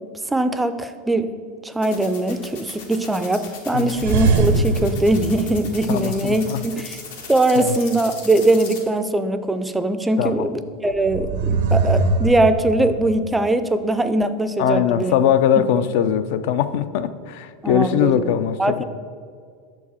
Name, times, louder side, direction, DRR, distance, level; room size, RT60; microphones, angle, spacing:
voice 1, 0.3-1.3 1.6-7.0 7.3-15.2 17.6-18.2 18.6-18.8, right 2 dB, 10° right, 10 dB, 0.4 m, -21 dB
sound 1, 1.8-8.8, left 5 dB, 85° left, 1.3 m, -37 dB
voice 2, 3.7-4.1 5.9-6.6 7.6-7.8 10.2-10.5 14.6-18.8, left 9 dB, 65° left, 12 dB, 0.4 m, -21 dB
sound 2, 4.0-6.4 10.9-13.2, right 3 dB, 75° right, 0.6 m, -22 dB
6.6 x 4.7 x 4.2 m, 2.1 s
supercardioid pair, 115°, 0 cm